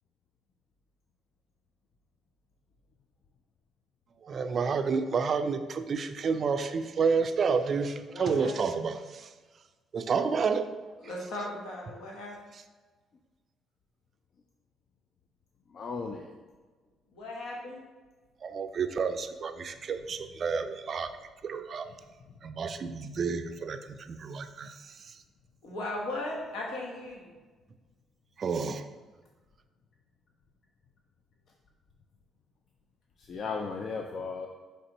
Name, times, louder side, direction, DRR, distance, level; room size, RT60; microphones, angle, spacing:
voice 1, 4.2-9.3 9.9-10.7 18.4-21.1 21.4-21.9 22.4-25.2 28.4-28.9, right 5 dB, 50° right, 9 dB, 0.3 m, -30 dB
voice 2, 8.1-8.8 11.0-12.3 17.1-17.8 25.6-27.3, left 1 dB, 80° left, -2 dB, 1.1 m, -37 dB
voice 3, 15.7-16.3 33.3-34.5, left 4 dB, 55° left, 3 dB, 0.4 m, -35 dB
5.1 x 3.2 x 2.9 m, 1.3 s
supercardioid pair, 70°, 0 cm